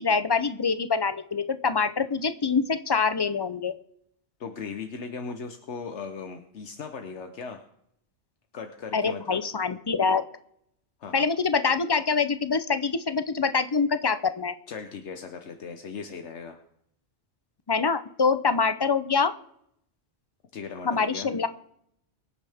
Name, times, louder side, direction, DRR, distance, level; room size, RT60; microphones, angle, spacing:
voice 1, 0.0-3.7 8.9-10.2 11.1-14.5 17.7-19.3 20.8-21.5, left 5 dB, 30° left, 11 dB, 0.5 m, -25 dB
voice 2, 4.4-7.6 8.5-9.4 11.0-11.3 14.7-16.6 20.5-21.3, left 5 dB, 80° left, 6 dB, 1.3 m, -38 dB
23.5 x 9.5 x 3.5 m, 0.74 s
omnidirectional pair, 1.2 m